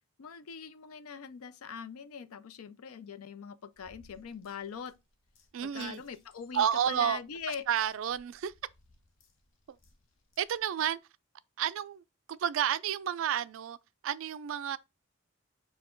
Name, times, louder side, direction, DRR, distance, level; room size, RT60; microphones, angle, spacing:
voice 1, 0.2-4.9 5.6-7.6, left 6 dB, 85° left, 0.5 m, -42 dB
sound 1, 3.7-10.9, left 2 dB, 60° left, 0.8 m, -63 dB
voice 2, 5.5-6.0 6.5-7.2 7.7-8.5 9.7-9.8 10.4-11.0 11.6-12.0 12.3-13.8 14.0-14.8, right 9 dB, 65° right, 0.3 m, -30 dB
4.3 x 2.3 x 4.3 m
head